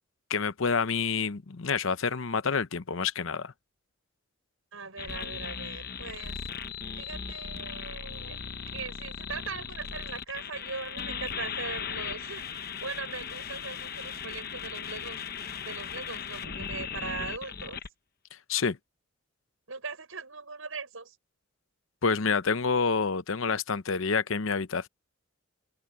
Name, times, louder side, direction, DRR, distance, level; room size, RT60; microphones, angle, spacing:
voice 1, 0.3-3.5 18.5-18.8 22.0-24.9, left 5 dB, 75° left, 0.8 m, -28 dB
voice 2, 4.7-6.4 7.0-8.4 8.7-15.2 15.6-17.8 19.7-21.2, right 4 dB, 80° right, 6.6 m, -40 dB
sound 1, 5.0-17.9, left 7 dB, 45° left, 1.0 m, -38 dB
head